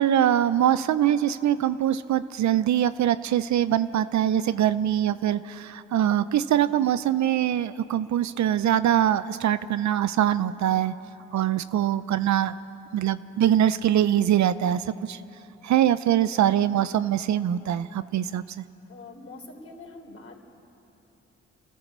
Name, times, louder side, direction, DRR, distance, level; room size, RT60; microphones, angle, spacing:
voice 1, 0.0-10.9 11.3-12.6 12.9-15.2 15.6-18.6, right 11 dB, 70° right, 14 dB, 0.6 m, -23 dB
voice 2, 18.9-20.4, left 3 dB, 50° left, 1 dB, 3.6 m, -44 dB
27.5 x 13.0 x 7.4 m, 3.0 s
supercardioid pair, 45°, 30 cm